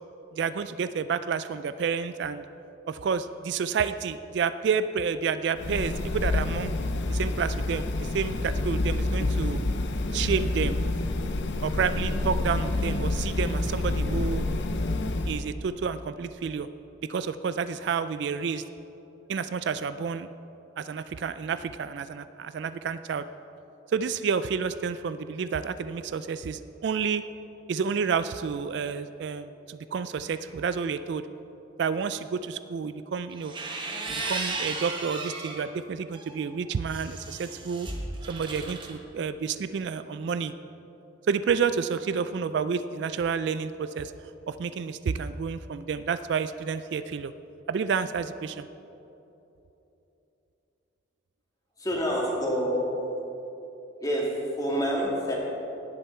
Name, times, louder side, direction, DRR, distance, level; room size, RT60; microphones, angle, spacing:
voice 1, 0.3-2.4 2.9-6.7 7.1-9.6 10.1-10.7 11.6-14.4 15.3-16.7 17.1-18.6 19.3-20.3 20.8-23.3 23.9-27.2 27.7-31.2 31.8-33.5 34.1-37.9 38.3-40.5 41.3-44.1 44.5-47.3 47.7-48.7, right 6 dB, 60° right, 13 dB, 0.3 m, -30 dB
sound 1, 5.6-15.4, left 2 dB, 60° left, 0.5 m, -28 dB
sound 2, 33.3-35.6 36.1-38.9, right 3 dB, 25° right, 1.1 m, -35 dB
voice 2, 51.8-52.8 54.0-54.3 54.6-55.3, equal, 20° left, -3 dB, 2.1 m, -27 dB
17.5 x 6.8 x 4.4 m, 3.0 s
head